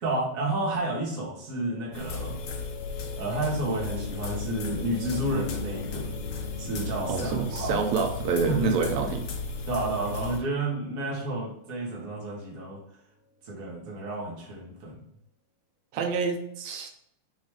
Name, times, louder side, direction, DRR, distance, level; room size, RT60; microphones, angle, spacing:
voice 1, 0.0-2.4 3.2-6.1 6.6-7.8 8.5-9.1 9.6-12.8 13.4-15.0, right 2 dB, 40° right, -4 dB, 1.4 m, -31 dB
sound 1, 1.4-13.5, left 4 dB, 35° left, 1.5 m, -43 dB
sound 2, 1.9-10.4, left 4 dB, 90° left, 1.1 m, -35 dB
voice 2, 7.1-9.2 15.9-16.9, right 5 dB, 75° right, 4 dB, 1.9 m, -27 dB
4.8 x 4.0 x 4.9 m, 0.72 s
omnidirectional pair, 3.4 m